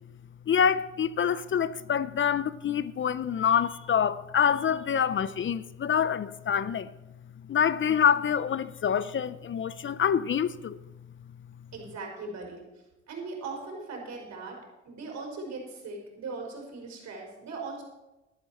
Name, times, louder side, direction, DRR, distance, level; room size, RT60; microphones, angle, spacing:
voice 1, 0.5-6.9 7.5-10.8, left 8 dB, 40° left, 0.5 m, -26 dB
voice 2, 11.7-12.6 13.1-14.6 14.9-17.8, right 3 dB, 65° right, 5.1 m, -39 dB
13.0 x 12.0 x 4.4 m
cardioid pair, 90°, 30 cm